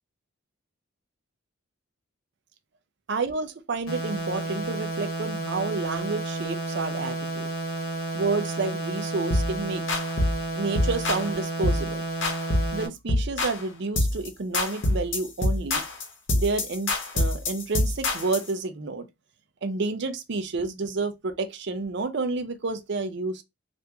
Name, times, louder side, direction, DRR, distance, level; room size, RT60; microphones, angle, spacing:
voice 1, 3.1-7.5 8.1-9.8 10.5-12.0 12.7-15.8 16.3-19.1 19.6-23.4, right 3 dB, 55° right, 0.5 m, -30 dB
sound 1, 3.9-12.9, right 1 dB, 90° left, 0.9 m, -31 dB
sound 2, 9.3-9.5 9.9-10.4 10.7-11.3 11.6-11.9 12.2-12.8 13.1-13.6 14.0-14.3 14.5-18.5, left 1 dB, 60° left, 0.9 m, -25 dB
2.9 x 2.5 x 3.4 m
head